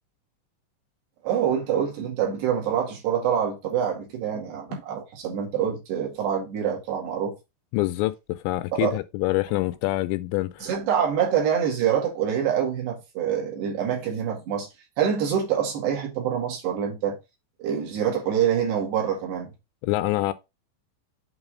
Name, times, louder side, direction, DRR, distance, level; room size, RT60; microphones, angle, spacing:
voice 1, 1.2-7.3 8.7-8.9 10.6-14.7 15.0-17.2 17.6-19.5, right 8 dB, 65° right, 3.8 m, -25 dB
voice 2, 7.7-10.7 19.8-20.3, left 18 dB, 85° left, 2.7 m, -26 dB
8.1 x 3.6 x 4.9 m
omnidirectional pair, 5.4 m